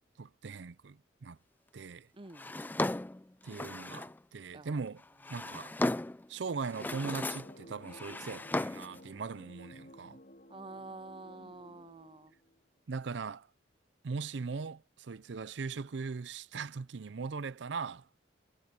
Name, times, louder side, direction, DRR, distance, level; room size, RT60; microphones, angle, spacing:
voice 1, 0.2-1.4 1.7-2.1 3.4-5.0 5.3-5.8 6.3-10.2 12.9-13.5 14.0-18.1, right 4 dB, 75° right, 0.5 m, -40 dB
voice 2, 2.1-2.5 4.5-4.8 10.5-12.3, right 2 dB, 25° right, 0.6 m, -48 dB
Drawer open or close, 2.3-4.2 5.0-6.3 6.6-7.6 7.9-9.0, left 2 dB, 10° left, 0.3 m, -36 dB
sound 1, 6.8-12.6, left 1 dB, 50° left, 3.7 m, -54 dB
head